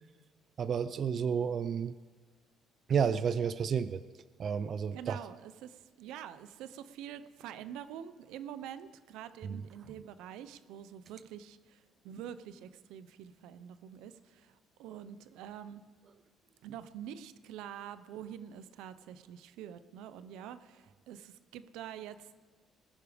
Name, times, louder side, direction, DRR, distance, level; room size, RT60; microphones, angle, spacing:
voice 1, 0.6-1.9 2.9-4.0 4.4-5.2 9.4-9.6, right 7 dB, 45° right, 14 dB, 0.4 m, -31 dB
voice 2, 4.9-15.8 16.6-22.4, right 10 dB, 85° right, 13 dB, 0.7 m, -46 dB
20.0 x 9.9 x 5.1 m, 1.4 s
cardioid pair, 120°, 0 cm